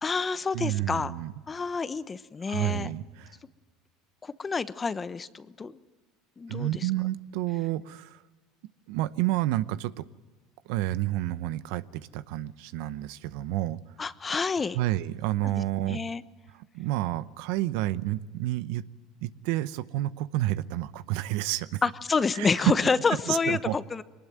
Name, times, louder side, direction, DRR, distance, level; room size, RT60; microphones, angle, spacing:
voice 1, 0.0-1.1 1.5-2.9 4.2-5.8 6.4-6.9 14.0-14.8 15.4-16.2 21.8-24.0, left 5 dB, 25° left, 14 dB, 1.0 m, -28 dB
voice 2, 0.5-1.3 2.5-3.3 6.5-8.2 8.9-10.1 10.7-13.8 14.7-16.0 16.7-18.8 19.2-21.8 22.3-22.7 23.3-23.8, right 16 dB, 70° right, 15 dB, 0.8 m, -29 dB
22.5 x 20.0 x 9.3 m, 1.3 s
supercardioid pair, 105°, 0 cm